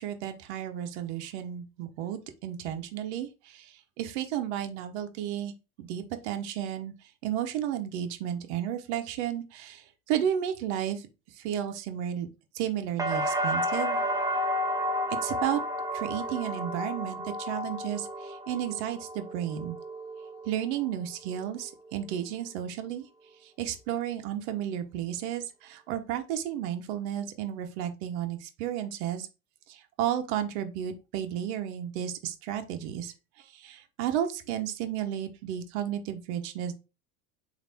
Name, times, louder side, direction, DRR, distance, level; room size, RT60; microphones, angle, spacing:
voice 1, 0.0-5.5 5.8-6.9 7.2-11.1 11.4-12.3 12.5-14.0 15.2-15.6 15.9-19.8 20.5-23.1 23.4-29.3 29.7-36.7, right 10 dB, 75° right, 7 dB, 0.9 m, -33 dB
sound 1, 13.0-20.9 21.3-21.9, equal, 10° right, 0.9 m, -32 dB
3.3 x 2.6 x 4.0 m, 0.29 s
hypercardioid pair, 90°, 34 cm